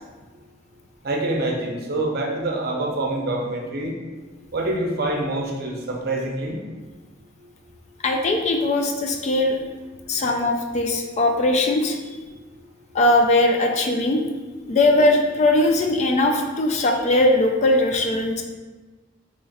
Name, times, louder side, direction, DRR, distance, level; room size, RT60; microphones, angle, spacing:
voice 1, 1.0-3.9 4.5-6.6 12.3-12.4 14.7-14.8, right 2 dB, 55° right, 0 dB, 0.6 m, -26 dB
voice 2, 8.0-9.6 10.1-12.0 12.9-14.2 14.6-18.4, left 2 dB, 35° left, 3 dB, 0.3 m, -20 dB
3.0 x 2.4 x 4.1 m, 1.3 s
head